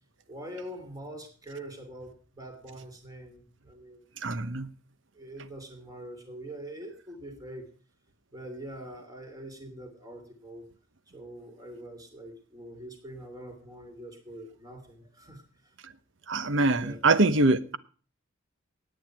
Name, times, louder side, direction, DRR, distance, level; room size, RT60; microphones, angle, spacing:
voice 1, 0.3-4.1 5.1-7.7 8.3-10.7 11.1-15.7 16.7-17.0, right 1 dB, 15° right, 2.9 m, -44 dB
voice 2, 4.2-4.7 16.3-17.8, right 2 dB, 60° right, 1.0 m, -24 dB
17.0 x 9.3 x 4.7 m
head